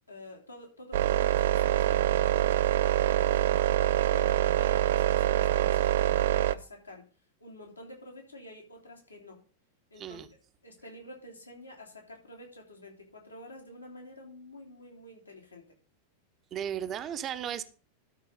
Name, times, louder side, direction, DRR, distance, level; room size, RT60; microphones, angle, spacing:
voice 1, 0.1-3.4 4.1-7.0 7.4-9.4 9.9-10.2 10.6-15.6, left 1 dB, 80° left, 3.3 m, -48 dB
sound 1, 0.9-6.5, right 13 dB, 55° right, 0.4 m, -25 dB
voice 2, 10.0-10.3 16.5-17.6, right 9 dB, 30° right, 0.8 m, -35 dB
12.5 x 4.6 x 5.5 m
figure-of-eight pair, 90°, 0 cm